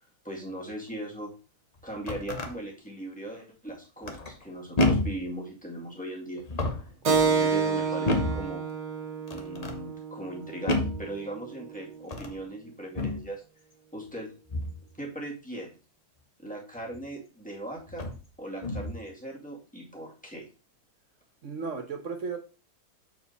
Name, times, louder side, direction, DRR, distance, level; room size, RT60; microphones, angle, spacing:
voice 1, 0.2-1.3 1.8-8.7 9.3-13.4 13.9-14.4 15.0-15.7 16.4-18.0 18.4-20.4, right 1 dB, 5° left, -3 dB, 2.1 m, -39 dB
sound 1, 1.8-2.5 4.0-4.4 4.8-5.3 6.4-7.0 8.0-8.5 9.3-9.8 10.7-11.1 12.0-12.4 12.9-13.3 14.5-14.8 16.9-17.0 17.9-18.2 18.6-19.0, left 2 dB, 30° left, 0.9 m, -29 dB
Keyboard (musical), 7.0-12.1, right 5 dB, 85° right, 1.8 m, -29 dB
voice 2, 21.4-22.4, right 5 dB, 55° right, 5 dB, 1.4 m, -35 dB
7.3 x 4.6 x 4.0 m, 0.32 s
omnidirectional pair, 1.7 m